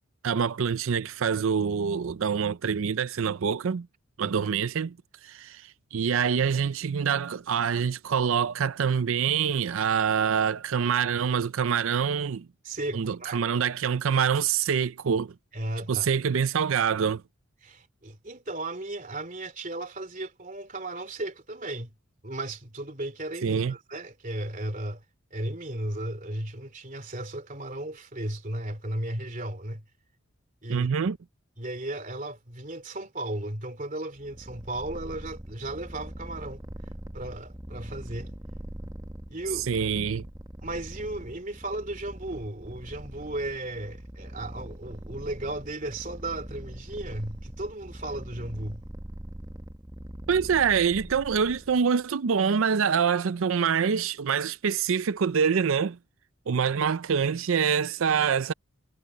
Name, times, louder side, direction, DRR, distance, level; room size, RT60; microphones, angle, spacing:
voice 1, 0.2-3.9 4.2-5.0 5.2-12.5 12.9-15.3 15.9-17.2 23.4-23.7 30.7-31.2 39.5-40.2 50.3-56.0 56.5-58.5, right 6 dB, 75° right, 0.5 m, -25 dB
voice 2, 12.6-13.4 15.5-16.1 17.6-21.9 22.2-25.0 25.3-29.8 30.6-30.9 31.6-36.6 37.1-38.3 39.3-39.7 40.6-48.8, right 1 dB, 40° right, 3.1 m, -35 dB
Purr, 34.2-51.9, right 1 dB, 15° right, 0.8 m, -42 dB
head